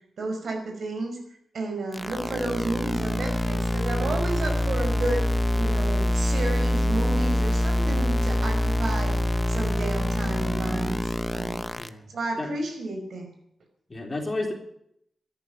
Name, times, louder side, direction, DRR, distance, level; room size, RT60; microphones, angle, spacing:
voice 1, 0.2-1.2 1.5-5.3 5.5-9.2 9.5-11.6 12.1-13.3, right 2 dB, 75° right, 4 dB, 5.4 m, -32 dB
sound 1, 1.9-11.9, left 1 dB, 10° left, 0.9 m, -25 dB
voice 2, 11.8-12.1 12.4-12.5 13.9-14.5, left 2 dB, 30° left, 3 dB, 3.6 m, -31 dB
13.5 x 11.0 x 9.2 m, 0.73 s
wide cardioid pair, 95°, 0 cm